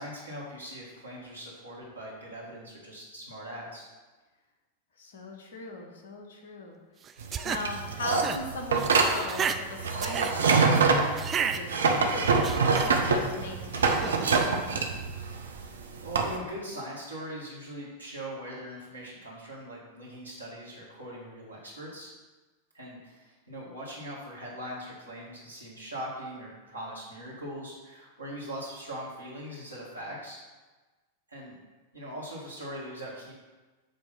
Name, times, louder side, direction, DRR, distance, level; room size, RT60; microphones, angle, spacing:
voice 1, 0.0-3.9 15.4-15.7 16.0-22.1 22.7-30.4 31.3-31.6 31.9-33.3, equal, 85° right, -6 dB, 2.1 m, -41 dB
voice 2, 5.0-6.8 7.4-12.4 12.8-14.5, left 2 dB, 60° left, 2 dB, 1.1 m, -39 dB
sound 1, 7.1-7.6 8.1-8.4 8.7-9.6 10.0-10.3 11.2-11.6 12.2-12.9 13.8-14.5, right 7 dB, 25° right, 0.4 m, -32 dB
sound 2, 7.2-16.3, right 4 dB, 70° right, 0.7 m, -25 dB
7.5 x 3.0 x 5.8 m, 1.2 s
figure-of-eight pair, 90°, 0 cm